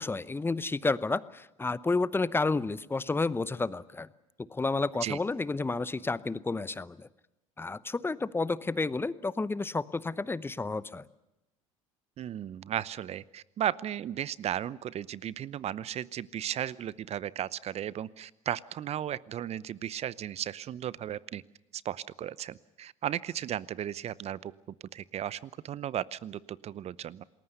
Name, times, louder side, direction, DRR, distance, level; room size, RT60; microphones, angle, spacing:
voice 1, 0.0-4.1 4.5-7.1 7.6-11.0, left 3 dB, 15° left, 18 dB, 0.8 m, -31 dB
voice 2, 12.2-21.4 21.7-24.5 24.9-27.2, right 10 dB, 40° right, 20 dB, 0.8 m, -35 dB
28.5 x 20.0 x 6.8 m, 0.91 s
figure-of-eight pair, 70°, 17 cm